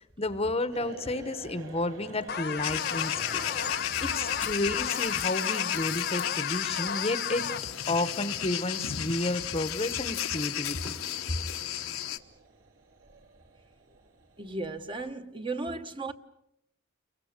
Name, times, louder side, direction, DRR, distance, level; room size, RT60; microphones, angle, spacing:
voice 1, 0.0-3.4 4.0-7.5 7.9-10.9, left 2 dB, 30° left, 1.0 m, -31 dB
sound 1, 0.7-15.1, right 3 dB, 65° right, 3.0 m, -50 dB
sound 2, 2.3-7.6, left 7 dB, 50° left, 1.1 m, -34 dB
sound 3, 2.6-12.2, left 11 dB, 85° left, 1.2 m, -33 dB
voice 2, 14.4-16.1, right 3 dB, 25° right, 1.0 m, -35 dB
30.0 x 23.5 x 6.6 m
head